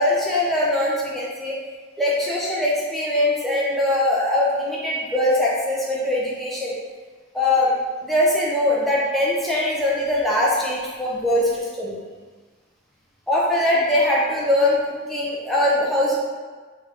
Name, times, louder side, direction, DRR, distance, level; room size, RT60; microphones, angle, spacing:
voice 1, 0.0-1.5 2.0-6.8 7.3-12.0 13.3-16.2, left 1 dB, ahead, -6 dB, 0.5 m, -21 dB
3.5 x 2.5 x 2.7 m, 1.4 s
head